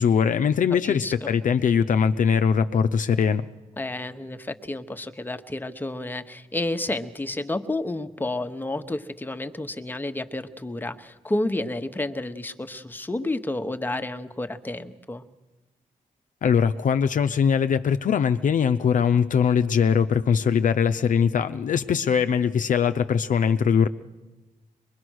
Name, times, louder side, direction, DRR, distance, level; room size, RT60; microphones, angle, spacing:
voice 1, 0.0-3.5 16.4-23.9, left 7 dB, 60° left, 10 dB, 0.7 m, -21 dB
voice 2, 0.7-1.3 3.8-15.2, left 2 dB, 15° left, 9 dB, 1.1 m, -30 dB
23.0 x 21.5 x 6.4 m, 1.1 s
cardioid pair, 90°, 15 cm